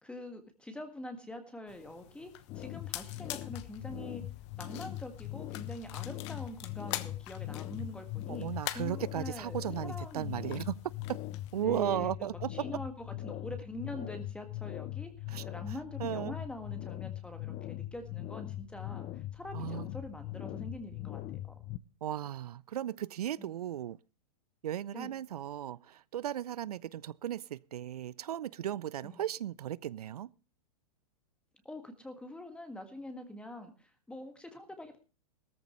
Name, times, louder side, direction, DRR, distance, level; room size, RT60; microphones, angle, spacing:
voice 1, 0.0-4.2 4.6-8.5 8.7-10.7 11.6-21.2 21.5-21.6 23.4-23.5 24.9-25.1 29.0-29.2 31.6-35.0, left 1 dB, 5° left, 1.8 m, -45 dB
sound 1, 1.7-11.7, left 16 dB, 50° left, 1.1 m, -46 dB
sound 2, 2.5-21.8, left 15 dB, 30° left, 0.7 m, -41 dB
voice 2, 8.3-10.8 11.1-11.2 11.5-12.5 15.3-15.4 16.0-16.3 19.5-19.8 22.0-24.0 24.6-30.3, right 11 dB, 80° right, 0.6 m, -36 dB
17.0 x 14.0 x 3.1 m
hypercardioid pair, 130°, 19 cm